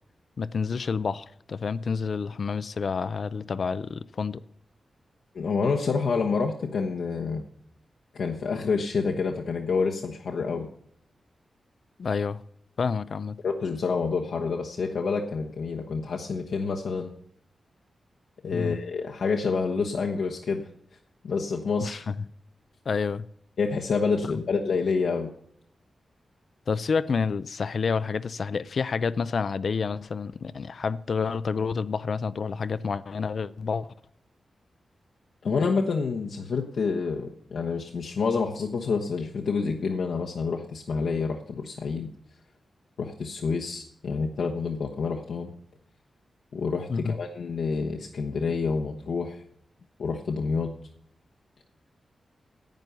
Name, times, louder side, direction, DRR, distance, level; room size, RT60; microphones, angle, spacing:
voice 1, 0.4-4.4 12.0-12.4 12.8-13.4 18.5-18.8 21.8-22.1 22.9-23.2 26.7-33.9 46.9-47.2, left 5 dB, 50° left, 0.4 m, -29 dB
voice 2, 5.3-7.4 8.1-10.7 13.4-17.1 18.4-20.6 21.2-22.0 23.6-25.3 35.4-42.1 43.0-45.5 46.5-49.4 50.0-50.7, left 5 dB, 70° left, 1.1 m, -28 dB
10.5 x 9.3 x 6.8 m
wide cardioid pair, 175°, 0 cm